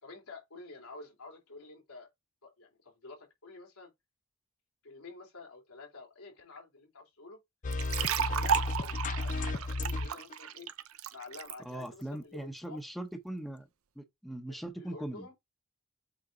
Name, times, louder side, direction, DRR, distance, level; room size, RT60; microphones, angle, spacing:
voice 1, 0.0-2.1 2.4-3.9 4.8-7.4 7.8-10.7 11.1-12.8 14.5-15.3, left 3 dB, 85° left, 2.8 m, -50 dB
sound 1, 7.6-10.3, left 2 dB, 35° left, 0.5 m, -33 dB
sound 2, 7.7-11.5, right 7 dB, 70° right, 0.7 m, -33 dB
voice 2, 11.6-13.7 14.0-15.3, right 1 dB, ahead, 1.0 m, -40 dB
8.1 x 3.7 x 3.9 m
head